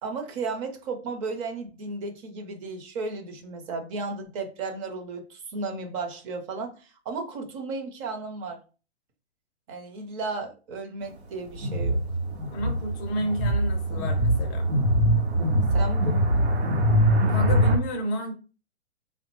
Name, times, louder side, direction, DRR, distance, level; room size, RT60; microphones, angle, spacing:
voice 1, 0.0-8.6 9.7-12.0 15.7-16.2, right 3 dB, 30° right, 0.6 m, -34 dB
sound 1, 11.6-17.8, equal, 75° right, 0.9 m, -23 dB
voice 2, 12.5-14.7 17.3-18.3, right 1 dB, 20° left, 0.4 m, -31 dB
3.6 x 2.1 x 3.0 m
hypercardioid pair, 135°, 34 cm